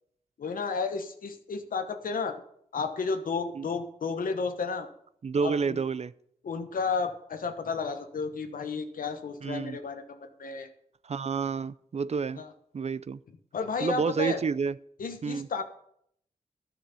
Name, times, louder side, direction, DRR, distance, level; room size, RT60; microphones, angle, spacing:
voice 1, 0.4-2.3 2.7-4.9 5.4-5.8 6.4-10.7 12.4-12.5 13.5-14.4 15.0-15.6, left 4 dB, 90° left, 1.1 m, -32 dB
voice 2, 5.2-6.1 9.4-9.8 11.0-12.4 12.7-13.2 13.8-14.8 15.2-15.5, right 5 dB, 50° right, 0.4 m, -29 dB
12.0 x 7.2 x 6.9 m
cardioid pair, 60°, 14 cm